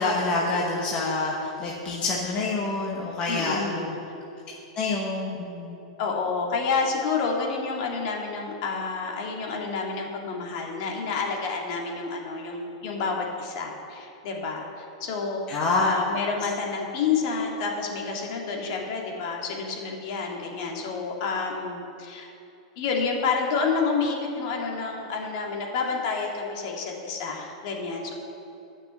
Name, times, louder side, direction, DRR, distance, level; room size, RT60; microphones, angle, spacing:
voice 1, 0.0-1.3 1.6-3.9 4.8-5.8 15.5-15.9, left 3 dB, 30° left, -3 dB, 1.2 m, -27 dB
voice 2, 3.3-4.0 6.0-22.3 22.8-28.1, left 4 dB, 50° left, 0 dB, 2.1 m, -29 dB
10.5 x 6.0 x 8.1 m, 2.9 s
supercardioid pair, 150°, 3 cm